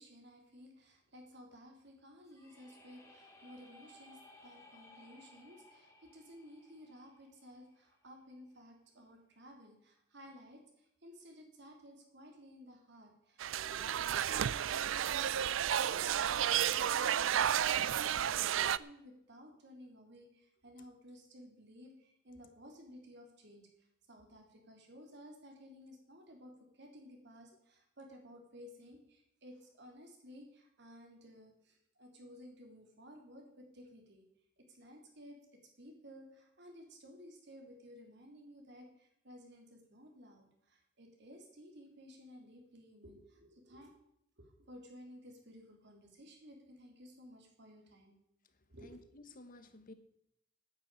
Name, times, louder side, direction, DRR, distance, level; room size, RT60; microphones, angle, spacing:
voice 1, 0.0-23.7 24.1-34.3 34.6-35.4 35.8-43.9 44.4-48.2 48.7-49.0, equal, 60° right, 2 dB, 3.5 m, -55 dB
sound 1, 2.3-8.1, left 2 dB, 15° left, 2.7 m, -60 dB
sound 2, 13.4-18.8, right 9 dB, 80° right, 0.4 m, -32 dB
voice 2, 48.8-49.9, left 2 dB, 45° left, 10 dB, 1.4 m, -54 dB
9.6 x 9.6 x 9.0 m, 0.78 s
head